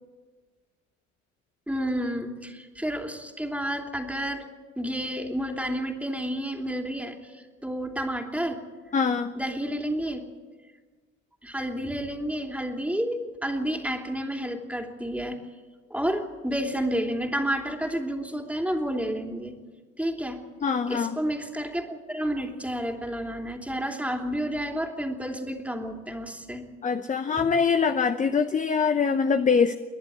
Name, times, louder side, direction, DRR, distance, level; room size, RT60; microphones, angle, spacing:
voice 1, 1.7-4.4 4.8-8.6 9.3-10.3 11.4-15.4 15.9-19.6 20.0-20.4 20.9-26.7 27.4-27.5, equal, 5° right, 3 dB, 3.0 m, -30 dB
voice 2, 8.9-9.3 20.6-21.2 26.8-29.7, left 5 dB, 20° left, 9 dB, 0.9 m, -23 dB
29.5 x 11.0 x 10.0 m, 1.4 s
hypercardioid pair, 70°, 42 cm